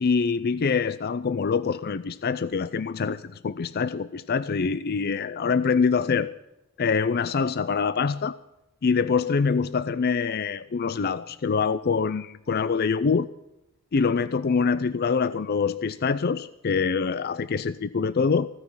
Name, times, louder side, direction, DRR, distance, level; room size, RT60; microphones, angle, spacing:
voice 1, 0.0-6.3 6.8-8.3 8.8-13.3 13.9-18.5, left 5 dB, 50° left, 0.5 m, -25 dB
16.0 x 9.7 x 7.0 m
head